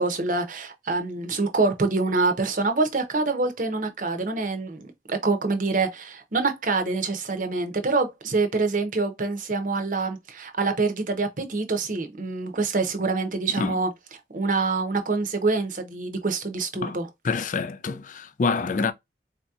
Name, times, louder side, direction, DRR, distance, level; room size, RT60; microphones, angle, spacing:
voice 1, 0.0-13.9 14.3-17.1, right 3 dB, 45° right, 0.7 m, -26 dB
voice 2, 17.2-18.9, left 4 dB, 45° left, 0.4 m, -26 dB
4.1 x 2.8 x 2.3 m
head